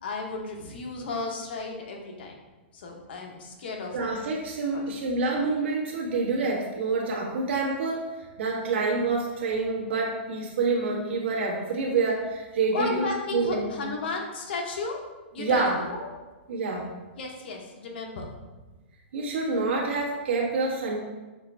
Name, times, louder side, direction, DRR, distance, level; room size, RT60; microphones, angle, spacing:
voice 1, 0.0-2.4 2.7-4.0 4.7-4.9 12.7-15.0 15.3-16.1 17.2-18.3, left 3 dB, 60° left, 0 dB, 0.9 m, -33 dB
voice 2, 3.9-8.1 8.4-13.9 15.4-15.8 16.5-16.8 19.1-21.0, right 3 dB, 70° right, -3 dB, 1.4 m, -27 dB
6.6 x 2.4 x 3.2 m, 1.2 s
hypercardioid pair, 165°, 6 cm